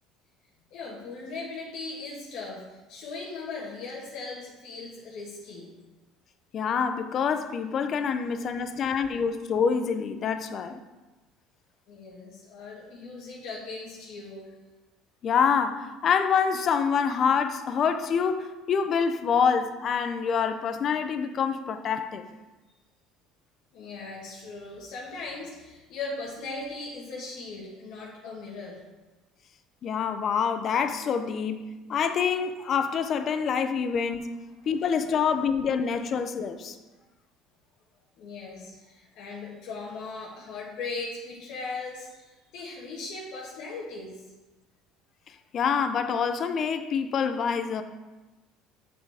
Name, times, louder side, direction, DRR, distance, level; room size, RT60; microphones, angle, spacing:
voice 1, 0.7-5.7 8.6-8.8 11.9-14.5 23.7-28.8 34.9-35.0 38.2-44.2, left 3 dB, 65° left, 1.4 m, -39 dB
voice 2, 6.5-10.8 15.2-22.3 29.8-34.3 34.7-36.8 45.5-47.8, left 6 dB, 40° left, 0.6 m, -26 dB
7.5 x 6.4 x 3.5 m
cardioid pair, 145°, 0 cm